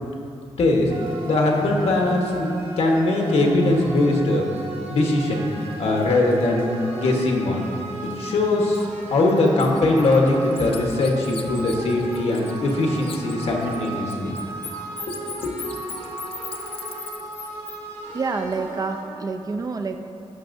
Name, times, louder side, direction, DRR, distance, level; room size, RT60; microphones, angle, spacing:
voice 1, 0.6-0.9 1.3-2.5 2.8-4.5 4.9-5.5 5.8-7.6 8.0-14.3 15.1-15.2 15.4-15.5, left 2 dB, 75° left, 0 dB, 1.2 m, -21 dB
sound 1, 0.9-19.0, right 3 dB, 75° right, 1.7 m, -36 dB
Bird, 8.7-8.9 9.3-12.8 13.0-17.8, left 6 dB, 60° left, 0.6 m, -38 dB
voice 2, 18.1-20.0, right 4 dB, 35° right, 6 dB, 0.4 m, -27 dB
16.5 x 6.0 x 2.6 m, 2.8 s
wide cardioid pair, 165°, 11 cm